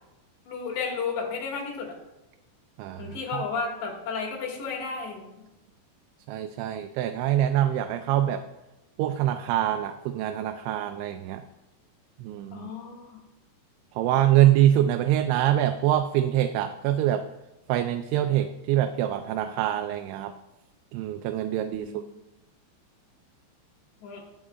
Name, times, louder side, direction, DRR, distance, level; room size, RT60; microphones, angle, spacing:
voice 1, 0.5-2.0 3.0-5.3 12.5-13.2 21.8-22.1 24.0-24.2, left 5 dB, 75° left, -2 dB, 3.9 m, -33 dB
voice 2, 2.8-3.4 6.3-8.4 9.0-11.4 12.2-12.7 14.0-17.3 17.7-20.3 20.9-21.9, right 12 dB, 85° right, 7 dB, 2.8 m, -24 dB
19.5 x 7.4 x 2.4 m, 0.98 s
omnidirectional pair, 5.2 m